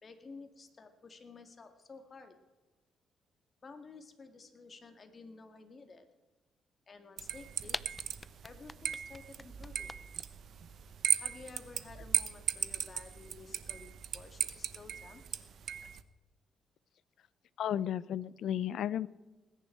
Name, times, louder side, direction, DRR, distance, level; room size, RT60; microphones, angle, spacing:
voice 1, 0.0-2.3 3.6-6.1 6.9-7.8 8.4-10.0 11.1-15.2, left 4 dB, 35° left, 6 dB, 2.0 m, -52 dB
sound 1, 7.2-16.0, right 8 dB, 60° right, 0.8 m, -37 dB
sound 2, 7.7-10.2, left 2 dB, 15° left, 0.4 m, -41 dB
voice 2, 17.6-19.1, left 10 dB, 70° left, 20 dB, 0.5 m, -33 dB
19.5 x 10.0 x 4.5 m, 1.1 s
cardioid pair, 90°, 0 cm